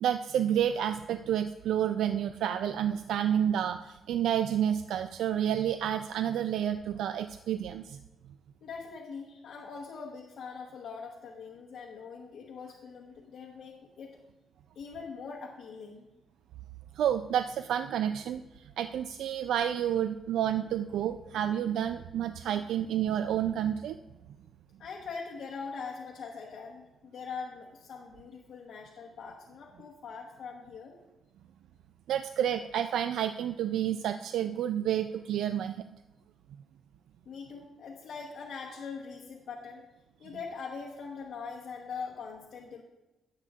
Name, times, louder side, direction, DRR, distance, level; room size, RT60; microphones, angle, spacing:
voice 1, 0.0-8.0 16.9-24.0 32.1-35.8, right 10 dB, 85° right, 9 dB, 0.3 m, -30 dB
voice 2, 8.6-14.2 14.7-16.1 24.8-31.0 37.2-39.9 40.2-42.8, left 5 dB, 55° left, -3 dB, 1.1 m, -42 dB
17.5 x 7.4 x 2.4 m, 1.1 s
cardioid pair, 160°, 0 cm